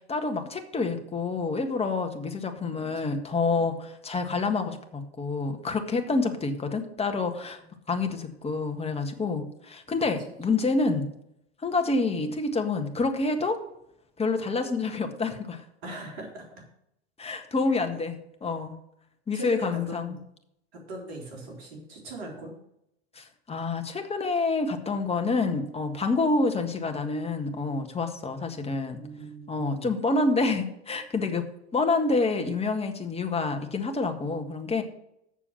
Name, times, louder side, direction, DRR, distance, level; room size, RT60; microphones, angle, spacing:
voice 1, 0.0-7.6 7.9-11.1 11.6-13.6 14.2-15.6 17.2-18.7 19.3-20.2 23.1-29.0 29.5-34.8, left 3 dB, 20° left, 5 dB, 1.6 m, -28 dB
voice 2, 2.5-2.9 3.3-3.9 6.1-6.2 10.1-10.6 15.8-16.5 17.3-17.4 17.9-18.0 19.3-20.2 20.7-22.5 28.9-29.9, right 1 dB, 65° right, 1 dB, 3.8 m, -40 dB
7.4 x 6.8 x 7.3 m, 0.78 s
hypercardioid pair, 85°, 32 cm